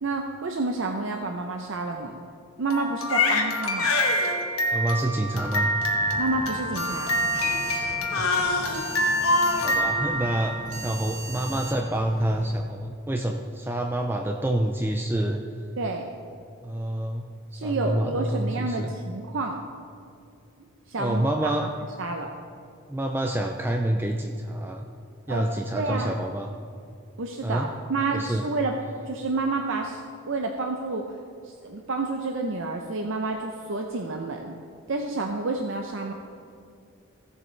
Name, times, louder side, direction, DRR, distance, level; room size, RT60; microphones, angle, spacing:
voice 1, 0.0-2.2 2.6-3.9 6.2-7.1 15.8-16.1 17.5-19.6 20.9-21.5 22.0-22.3 25.3-25.5 25.7-26.1 27.2-28.7 29.1-30.0 30.3-31.0 31.4-34.6 34.9-36.1, right 3 dB, 60° right, 3 dB, 0.6 m, -29 dB
Crying sobbing, 2.7-10.9, left 1 dB, 75° left, 1.2 m, -25 dB
voice 2, 4.7-5.7 8.1-8.8 9.6-15.4 16.6-17.2 17.5-19.0 21.0-21.7 22.9-24.9 25.3-26.5 27.4-27.7 28.1-28.5, right 1 dB, 10° right, 3 dB, 0.4 m, -27 dB
sound 1, 5.3-12.6, right 1 dB, 35° right, 1.4 m, -39 dB
16.0 x 7.4 x 3.2 m, 2.4 s
head